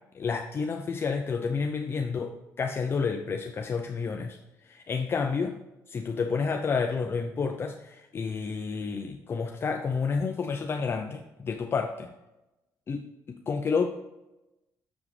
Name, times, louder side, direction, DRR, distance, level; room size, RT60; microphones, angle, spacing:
voice 1, 0.1-5.5 5.9-12.1 12.9-13.8, left 5 dB, 35° left, 5 dB, 0.6 m, -30 dB
7.2 x 7.1 x 3.3 m, 0.97 s
cardioid pair, 105°, 7 cm